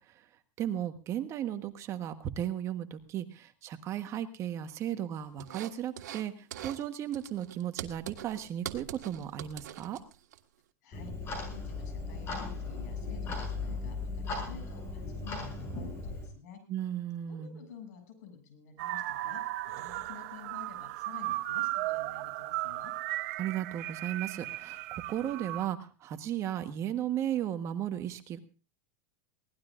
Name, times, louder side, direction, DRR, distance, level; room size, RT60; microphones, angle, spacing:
voice 1, 0.6-10.0 16.7-17.6 23.4-28.4, right 11 dB, 30° right, 8 dB, 1.3 m, -35 dB
sound 1, 5.4-6.2 6.5-6.8 7.1-10.4, right 11 dB, 90° right, 1.6 m, -43 dB
voice 2, 10.8-16.6 17.3-19.4 19.8-22.9, left 7 dB, 70° left, 6 dB, 7.6 m, -50 dB
Clock, 10.9-16.3, left 3 dB, 25° left, 6.9 m, -37 dB
sound 2, 18.8-25.7, right 17 dB, 60° right, 0.8 m, -36 dB
22.5 x 18.0 x 2.5 m, 0.35 s
supercardioid pair, 145°, 9 cm